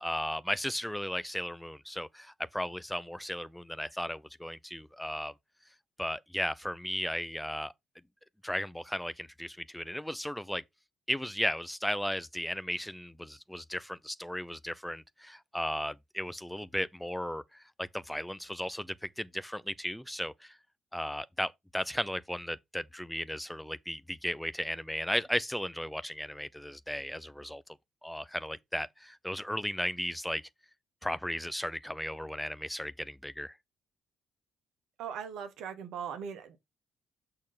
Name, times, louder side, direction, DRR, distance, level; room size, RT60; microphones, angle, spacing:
voice 1, 0.0-5.3 6.0-7.7 8.4-10.6 11.1-20.6 20.9-27.6 28.0-30.4 31.0-33.5, equal, 5° left, 0.6 m, -35 dB
voice 2, 35.0-36.6, right 7 dB, 60° right, 1.2 m, -39 dB
6.4 x 3.9 x 5.5 m
figure-of-eight pair, 45°, 0 cm